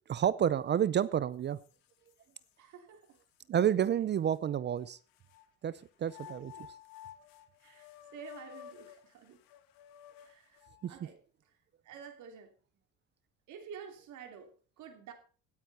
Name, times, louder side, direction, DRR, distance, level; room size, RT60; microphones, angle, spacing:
voice 1, 0.1-1.6 3.5-5.0 5.6-6.5 10.8-10.9, right 9 dB, 35° right, 0.5 m, -29 dB
sound 1, 1.0-1.1 1.6-2.5 3.1-3.2 4.3-5.5 6.0-10.9, left 11 dB, 80° left, 1.7 m, -53 dB
voice 2, 2.6-3.2 6.2-6.7 7.6-9.4 10.2-11.2 11.8-12.5 13.5-14.5 14.8-15.1, right 7 dB, 60° right, 3.2 m, -50 dB
17.5 x 9.6 x 4.2 m
cardioid pair, 160°, 33 cm